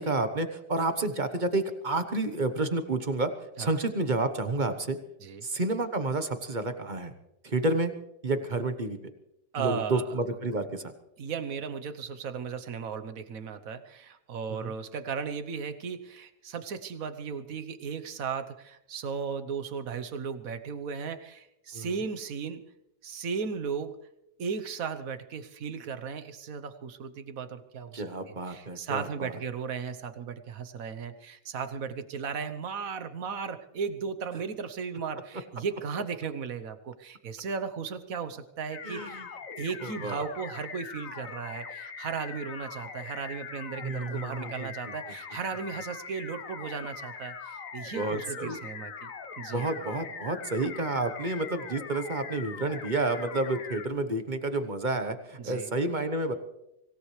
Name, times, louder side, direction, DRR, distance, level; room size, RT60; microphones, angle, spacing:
voice 1, 0.0-3.3 3.6-5.0 5.4-7.1 7.4-7.9 8.2-9.0 9.6-10.9 14.5-14.7 21.7-21.9 27.9-29.3 38.8-39.3 39.8-40.2 43.8-44.7 47.9-48.6 49.5-56.3, right 2 dB, 30° right, 9 dB, 1.1 m, -30 dB
voice 2, 9.5-10.1 11.2-22.6 23.0-24.0 24.4-49.1 49.4-49.7 55.4-55.7, right 6 dB, 55° right, 9 dB, 1.3 m, -36 dB
sound 1, 38.7-53.9, left 6 dB, 55° left, 1.4 m, -42 dB
25.0 x 17.0 x 3.3 m, 0.87 s
omnidirectional pair, 1.9 m